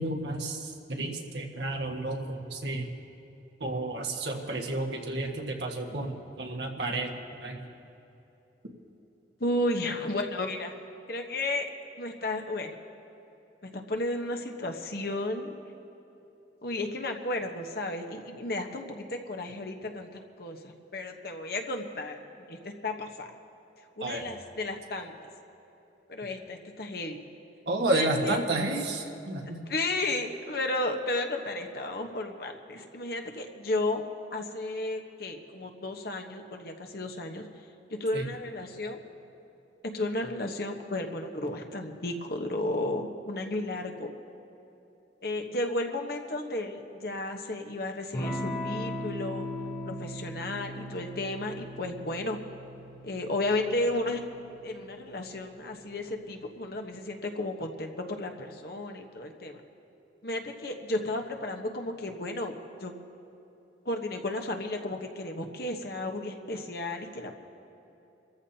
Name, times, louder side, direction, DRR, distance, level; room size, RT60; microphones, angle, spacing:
voice 1, 0.0-2.9 3.6-7.1 7.4-7.6 24.0-24.2 27.7-29.6 38.1-38.2, right 2 dB, 70° right, 1 dB, 1.6 m, -31 dB
voice 2, 9.4-10.7 11.1-11.7 12.0-12.8 13.6-15.5 16.6-22.1 22.5-23.3 24.0-25.3 26.1-27.2 27.9-28.4 29.7-34.0 34.3-37.5 38.0-39.0 39.9-44.1 45.2-49.5 49.8-52.4 53.0-54.2 54.6-59.6 60.2-62.9 63.8-67.4, left 2 dB, 60° left, 4 dB, 1.2 m, -33 dB
Electric guitar / Strum, 48.1-56.4, equal, 30° left, 1.2 m, -39 dB
27.5 x 14.0 x 2.9 m, 2.9 s
head